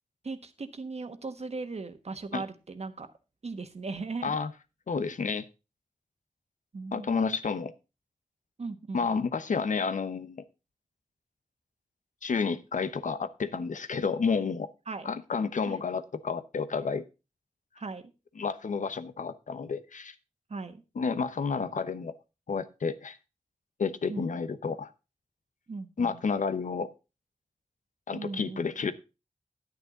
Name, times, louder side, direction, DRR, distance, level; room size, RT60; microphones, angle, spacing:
voice 1, 0.2-3.1 3.4-4.4 6.7-7.4 8.6-9.1 14.9-15.1 15.6-15.8 17.8-18.0 20.5-20.8 24.1-24.3 25.7-26.2 28.1-28.6, right 3 dB, 55° right, 9 dB, 1.3 m, -38 dB
voice 2, 4.9-5.5 6.9-7.7 8.9-10.4 12.2-14.7 15.0-17.0 18.4-20.1 21.0-22.1 22.5-23.2 23.8-24.9 26.0-26.9 28.1-28.9, left 5 dB, 90° left, 11 dB, 0.9 m, -30 dB
10.5 x 9.4 x 3.9 m, 0.29 s
wide cardioid pair, 80°, 13 cm